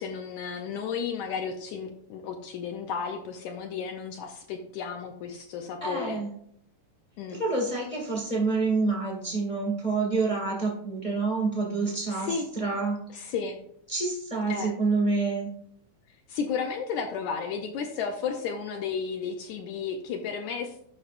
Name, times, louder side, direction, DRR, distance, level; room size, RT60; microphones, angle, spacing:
voice 1, 0.0-6.2 7.2-7.4 12.1-12.5 13.1-13.6 14.5-14.7 16.3-20.8, left 6 dB, 75° left, 4 dB, 1.8 m, -33 dB
voice 2, 5.8-6.3 7.3-13.0 13.9-15.5, right 3 dB, 25° left, -2 dB, 0.8 m, -27 dB
14.0 x 5.6 x 2.5 m, 0.70 s
omnidirectional pair, 3.7 m